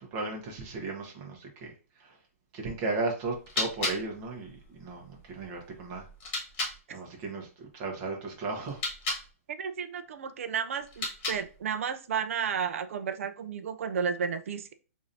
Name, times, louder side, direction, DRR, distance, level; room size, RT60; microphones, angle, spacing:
voice 1, 0.0-1.7 2.0-2.2 2.5-6.1 6.9-8.8, right 3 dB, 25° right, 1 dB, 1.0 m, -35 dB
sound 1, 3.2-6.8 8.6-9.3 10.8-11.7, left 2 dB, 25° left, 1.5 m, -36 dB
voice 2, 9.6-14.7, right 6 dB, 60° right, 10 dB, 0.5 m, -32 dB
4.8 x 2.7 x 2.7 m, 0.36 s
hypercardioid pair, 160°, 8 cm